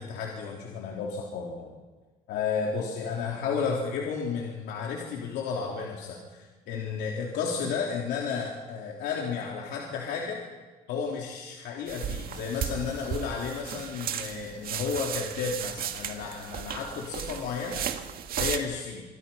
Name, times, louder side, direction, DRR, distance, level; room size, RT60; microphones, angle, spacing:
voice 1, 0.0-1.7 2.3-10.4 10.9-17.8 18.4-19.0, left 5 dB, 85° left, -1 dB, 3.4 m, -32 dB
sound 1, 11.9-18.6, right 9 dB, 60° right, 1.9 m, -35 dB
26.0 x 25.0 x 5.7 m, 1.4 s
cardioid pair, 110°, 17 cm